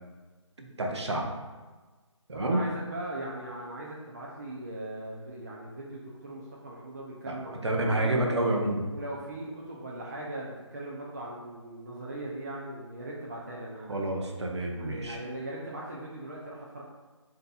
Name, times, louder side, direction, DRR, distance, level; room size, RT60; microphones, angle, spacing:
voice 1, 0.6-1.3 2.3-2.6 7.3-7.4 7.6-8.8 13.9-15.2, right 1 dB, 60° right, 1 dB, 0.8 m, -28 dB
voice 2, 2.3-8.4 8.9-14.0 14.7-16.8, right 1 dB, 35° right, -4 dB, 0.5 m, -39 dB
7.4 x 2.8 x 2.3 m, 1.3 s
figure-of-eight pair, 160°, 17 cm